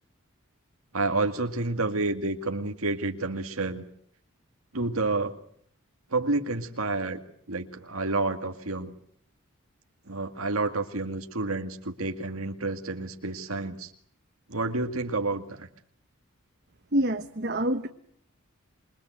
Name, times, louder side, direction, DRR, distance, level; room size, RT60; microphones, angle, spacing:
voice 1, 0.9-3.8 4.7-5.3 6.1-7.2 7.5-8.9 10.1-13.9 14.5-15.7, right 3 dB, 85° right, 5 dB, 2.1 m, -29 dB
voice 2, 16.9-17.9, right 1 dB, 50° right, 8 dB, 1.3 m, -26 dB
28.0 x 23.0 x 7.9 m, 0.64 s
head